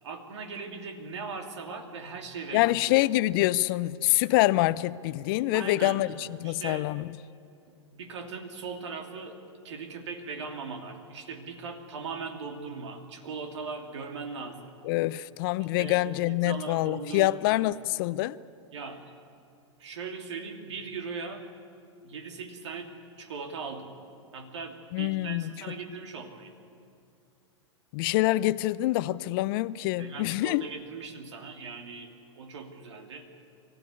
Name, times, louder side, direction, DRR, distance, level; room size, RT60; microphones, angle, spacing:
voice 1, 0.0-2.7 5.5-6.0 6.4-6.9 7.9-14.7 15.8-17.6 18.7-19.0 19.8-21.5 22.0-22.9 23.2-23.9 24.3-26.5 30.0-33.3, right 4 dB, 70° right, 2.8 m, -39 dB
voice 2, 2.5-7.0 14.9-18.4 24.9-25.4 27.9-30.6, left 17 dB, 50° left, 0.6 m, -26 dB
23.5 x 15.0 x 9.7 m
hypercardioid pair, 105°, 16 cm